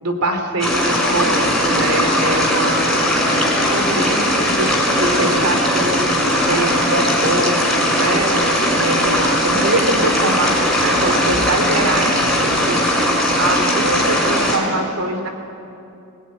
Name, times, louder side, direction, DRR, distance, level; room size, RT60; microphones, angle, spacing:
voice 1, 0.0-3.0 3.7-15.3, right 1 dB, 85° right, 5 dB, 3.1 m, -23 dB
sound 1, 0.6-14.6, equal, ahead, 5.4 m, -18 dB
22.0 x 18.0 x 9.8 m, 2.7 s
head